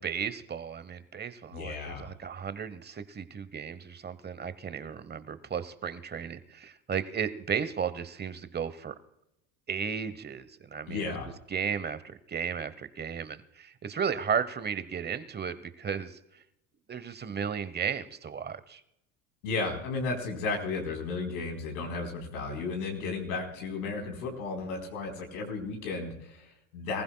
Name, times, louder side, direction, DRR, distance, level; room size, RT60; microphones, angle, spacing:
voice 1, 0.0-9.0 9.7-11.1 11.5-16.4 16.9-18.8, right 7 dB, 25° right, 14 dB, 1.0 m, -34 dB
voice 2, 1.5-2.1 10.9-11.3 19.4-27.0, left 3 dB, 80° left, 2 dB, 4.2 m, -34 dB
24.5 x 15.5 x 2.3 m, 0.82 s
hypercardioid pair, 90°, 43 cm